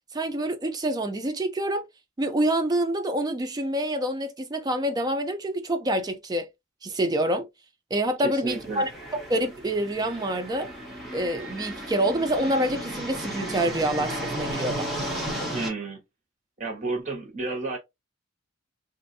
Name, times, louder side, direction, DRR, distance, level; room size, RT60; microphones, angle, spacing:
voice 1, 0.1-1.8 2.2-6.5 6.8-7.5 7.9-10.7 11.1-14.9, right 1 dB, 20° right, 0.4 m, -27 dB
voice 2, 8.2-8.9 15.5-16.0 16.6-17.8, right 3 dB, 40° right, 1.0 m, -31 dB
sound 1, 8.5-15.7, right 1 dB, ahead, 1.1 m, -34 dB
3.2 x 2.5 x 2.6 m
head